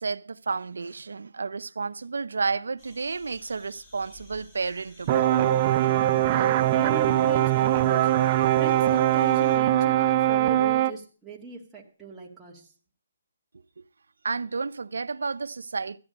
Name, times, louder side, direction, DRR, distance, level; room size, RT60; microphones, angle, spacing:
voice 1, 0.0-5.9 13.8-13.9 14.2-16.0, right 4 dB, 85° right, 0.6 m, -31 dB
sound 1, 2.8-9.6, left 2 dB, 25° left, 4.8 m, -54 dB
sound 2, 5.1-10.9, right 13 dB, 30° right, 0.6 m, -22 dB
voice 2, 6.3-8.2 8.5-12.7, right 1 dB, 5° right, 2.0 m, -39 dB
14.0 x 9.6 x 5.1 m
hypercardioid pair, 160°, 0 cm